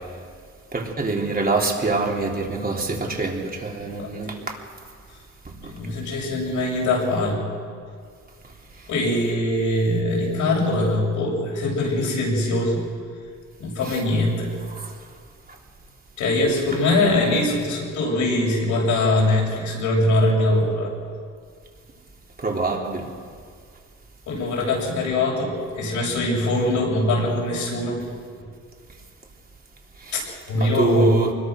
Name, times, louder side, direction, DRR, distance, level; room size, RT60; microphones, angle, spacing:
voice 1, 0.7-4.6 5.5-5.7 13.8-14.0 14.7-14.9 16.7-16.8 22.4-23.0 30.0-30.2 30.5-31.3, right 3 dB, 30° right, 0 dB, 3.7 m, -25 dB
voice 2, 3.8-4.3 5.7-7.4 8.9-12.9 13.6-14.5 16.2-20.9 24.3-28.0 30.1-31.1, left 1 dB, 80° left, -2 dB, 7.5 m, -22 dB
24.5 x 21.5 x 6.5 m, 2.1 s
cardioid pair, 90°, 30 cm